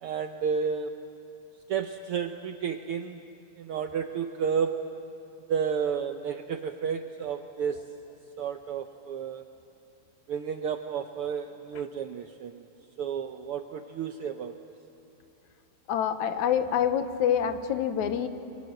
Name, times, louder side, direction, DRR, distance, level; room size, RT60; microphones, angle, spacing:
voice 1, 0.0-0.9 1.7-3.2 3.6-4.7 5.5-7.8 8.4-9.4 10.3-12.6 13.0-14.6, right 7 dB, 75° right, 7 dB, 1.3 m, -31 dB
voice 2, 15.9-18.3, left 9 dB, 80° left, 9 dB, 2.4 m, -26 dB
29.0 x 23.0 x 7.8 m, 2.8 s
omnidirectional pair, 3.3 m